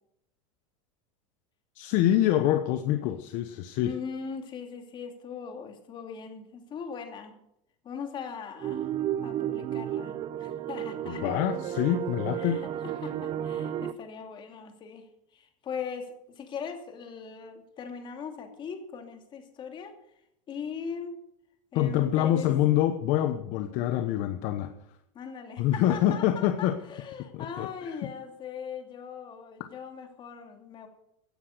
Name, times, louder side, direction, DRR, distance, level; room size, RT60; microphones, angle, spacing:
voice 1, 1.8-4.0 11.1-12.6 21.7-24.7 25.6-26.8 27.3-28.0, left 12 dB, 50° left, 9 dB, 1.1 m, -26 dB
voice 2, 3.8-7.4 7.8-8.9 9.2-11.3 12.4-15.1 15.3-20.0 20.5-21.2 21.7-22.5 23.7-23.8 25.1-30.9, left 6 dB, 30° left, 5 dB, 2.8 m, -40 dB
sound 1, 8.6-13.9, right 11 dB, 30° right, 0.7 m, -33 dB
15.5 x 10.0 x 6.7 m, 0.78 s
supercardioid pair, 140°, 17 cm